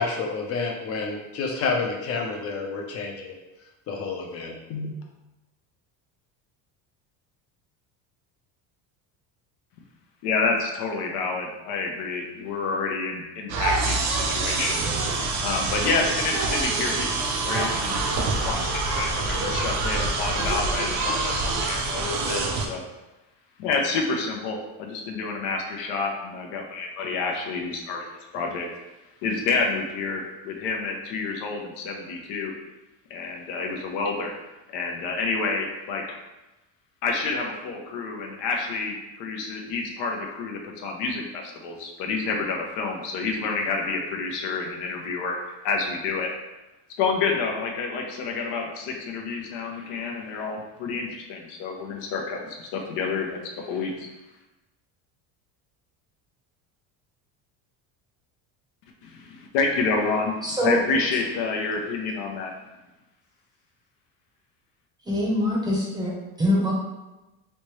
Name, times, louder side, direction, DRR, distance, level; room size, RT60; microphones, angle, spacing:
voice 1, 0.0-3.3 3.9-4.9, left 4 dB, 35° left, 1 dB, 0.6 m, -29 dB
voice 2, 10.2-14.8 15.4-18.0 18.5-22.8 23.6-28.0 28.3-28.7 29.2-32.5 33.1-34.3 34.7-36.0 37.0-45.4 45.6-46.3 47.0-54.1 59.0-60.4 60.6-62.5, left 4 dB, 80° left, 1 dB, 0.8 m, -28 dB
sound 1, 13.5-22.7, right 3 dB, 45° right, 0.6 m, -26 dB
voice 3, 60.4-60.8 65.1-66.1 66.4-66.7, left 1 dB, 10° right, -4 dB, 0.7 m, -23 dB
3.3 x 2.7 x 3.1 m, 1.0 s
cardioid pair, 145°, 39 cm